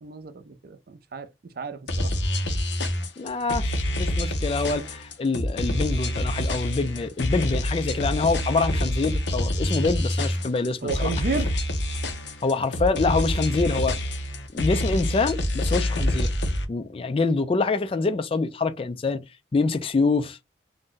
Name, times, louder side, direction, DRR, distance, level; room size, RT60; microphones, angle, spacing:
voice 1, 0.0-2.1 10.8-11.5, right 3 dB, 55° right, 0.5 m, -32 dB
sound 1, 1.9-16.7, left 1 dB, 80° left, 0.7 m, -27 dB
voice 2, 3.2-11.1 12.4-14.0 14.5-16.3 16.7-19.2 19.5-20.4, left 3 dB, 30° left, 0.3 m, -25 dB
2.6 x 2.2 x 3.7 m
head